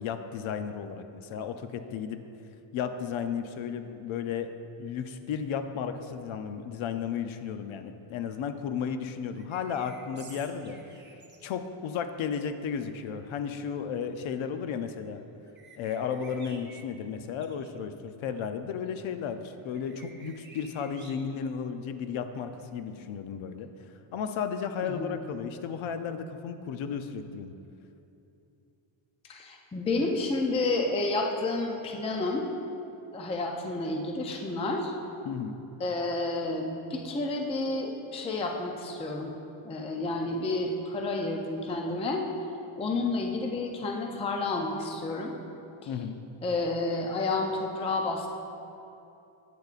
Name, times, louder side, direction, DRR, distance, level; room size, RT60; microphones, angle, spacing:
voice 1, 0.0-2.2 2.7-10.8 11.4-15.2 15.8-23.7 24.1-27.5 35.2-35.6 45.9-46.2, left 7 dB, 70° left, 8 dB, 0.6 m, -34 dB
sound 1, 9.3-11.5 15.4-16.8 17.4-17.7 19.7-21.1, right 3 dB, 20° right, 0.7 m, -51 dB
voice 2, 24.8-25.2 29.3-32.4 33.1-34.9 35.8-39.3 39.6-42.2 42.8-45.3 46.4-48.3, left 2 dB, 15° left, 2 dB, 0.3 m, -30 dB
10.5 x 8.5 x 2.4 m, 2.8 s
cardioid pair, 180°, 49 cm